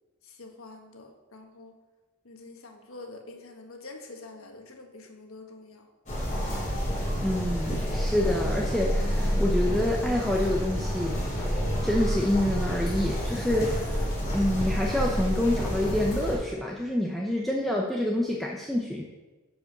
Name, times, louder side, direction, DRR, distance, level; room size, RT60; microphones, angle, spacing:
voice 1, 0.4-1.7 2.2-5.8, left 2 dB, 85° left, 4 dB, 1.4 m, -46 dB
sound 1, 6.1-16.3, equal, 35° left, 3.4 m, -28 dB
voice 2, 7.2-11.2 11.8-19.0, left 1 dB, ahead, -2 dB, 0.7 m, -27 dB
10.0 x 5.0 x 6.5 m, 1.2 s
head